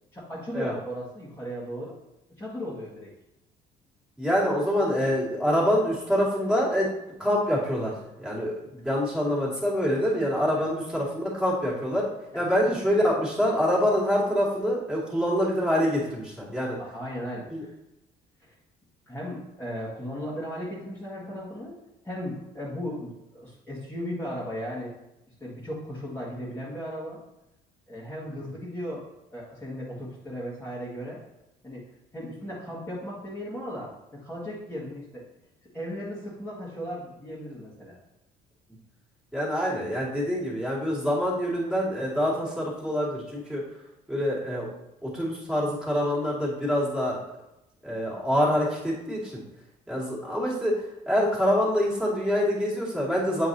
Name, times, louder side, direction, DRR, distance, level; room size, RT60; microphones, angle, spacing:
voice 1, 0.1-2.0 2.4-3.1 10.6-10.7 12.3-12.4 16.8-17.7 18.4-18.5 19.1-21.8 22.0-24.9 25.4-27.2 27.9-31.2 31.6-31.9 32.1-35.3 35.7-38.0, equal, 15° left, -9 dB, 1.8 m, -36 dB
voice 2, 4.2-6.9 7.2-16.8 17.5-17.7 39.3-43.6 44.1-44.7 45.0-47.2 47.8-49.4 49.9-53.5, equal, 5° right, -7 dB, 2.3 m, -26 dB
8.1 x 4.7 x 2.8 m, 0.92 s
cardioid pair, 110°, 17 cm